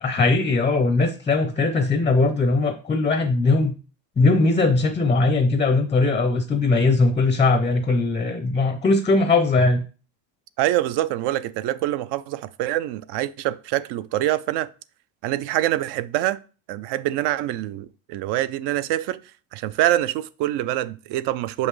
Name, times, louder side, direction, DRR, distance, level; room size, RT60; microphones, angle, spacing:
voice 1, 0.0-3.7 4.2-9.8, left 3 dB, 15° left, 0.5 m, -20 dB
voice 2, 10.6-14.7 15.2-16.4 16.7-19.2 19.5-21.7, right 14 dB, 60° right, 0.5 m, -25 dB
6.4 x 5.5 x 3.2 m
cardioid pair, 130°, 46 cm